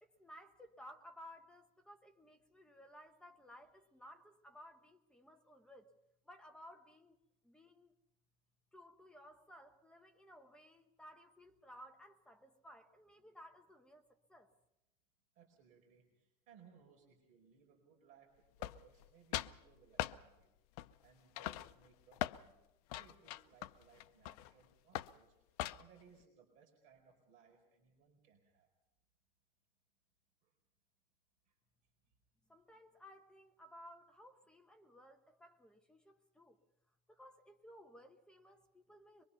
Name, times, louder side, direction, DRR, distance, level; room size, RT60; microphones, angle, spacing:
voice 1, 0.0-5.9 6.2-7.2 7.4-7.9 8.7-14.5 32.5-36.6 37.1-39.2, equal, 5° left, 1.0 m, -58 dB
voice 2, 15.3-18.3 18.6-20.5 21.0-22.6 22.9-25.4 25.7-28.7 30.4-30.5 31.5-31.6, right 7 dB, 40° right, 4.8 m, -65 dB
sound 1, 18.6-19.1 19.3-19.6 20.0-20.2 20.8-21.1 21.4-22.4 22.9-24.5 24.9-25.2 25.6-26.0, left 15 dB, 75° left, 0.7 m, -41 dB
23.5 x 23.0 x 5.7 m
cardioid pair, 170°, 20 cm